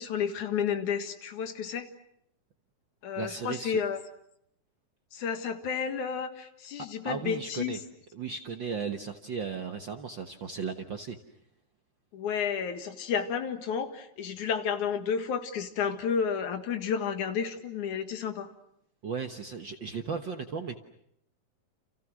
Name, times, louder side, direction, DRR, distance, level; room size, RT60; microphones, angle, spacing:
voice 1, 0.0-1.9 3.0-4.0 5.1-7.8 12.1-18.5, left 7 dB, 75° left, 7 dB, 3.1 m, -31 dB
voice 2, 3.2-3.8 6.8-7.8 8.1-11.2 19.0-20.7, right 5 dB, 55° right, 6 dB, 1.4 m, -36 dB
30.0 x 29.0 x 6.3 m, 0.74 s
omnidirectional pair, 3.5 m